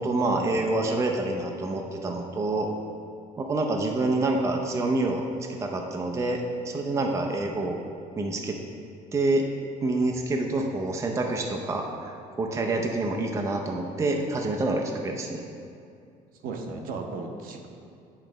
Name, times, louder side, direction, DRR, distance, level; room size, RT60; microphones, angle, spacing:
voice 1, 0.0-2.7 3.4-5.2 5.6-7.8 8.2-8.6 9.1-9.4 9.8-15.4, right 2 dB, 20° right, 1 dB, 0.5 m, -27 dB
voice 2, 16.4-17.7, right 4 dB, 65° right, 3 dB, 0.8 m, -36 dB
9.2 x 3.2 x 5.0 m, 2.4 s
cardioid pair, 130°, 16 cm